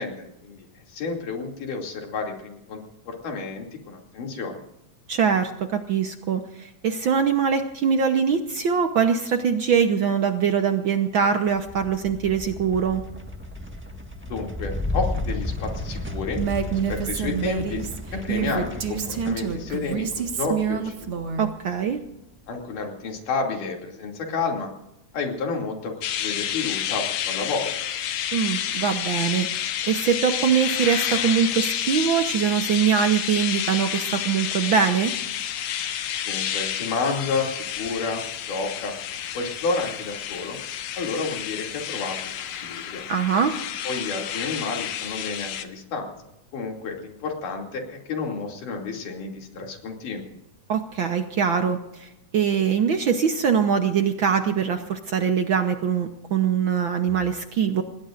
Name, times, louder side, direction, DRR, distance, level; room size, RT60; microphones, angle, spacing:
voice 1, 0.0-4.6 14.2-17.8 18.1-21.1 22.5-24.7 25.1-27.7 36.2-38.9 39.3-40.6 41.0-42.3 42.6-43.0 43.9-46.1 46.5-50.3, left 4 dB, 85° left, 1 dB, 4.3 m, -30 dB
voice 2, 5.1-13.0 21.4-22.0 28.3-35.1 43.1-43.5 50.7-57.8, right 7 dB, 75° right, 6 dB, 1.1 m, -23 dB
sound 1, 11.5-22.1, left 2 dB, 15° right, 0.4 m, -34 dB
Female speech woman speaking, 16.4-21.5, right 8 dB, 50° right, 2.2 m, -27 dB
sound 2, 26.0-45.6, left 10 dB, 70° left, 2.3 m, -30 dB
27.0 x 20.5 x 2.6 m, 0.89 s
omnidirectional pair, 3.6 m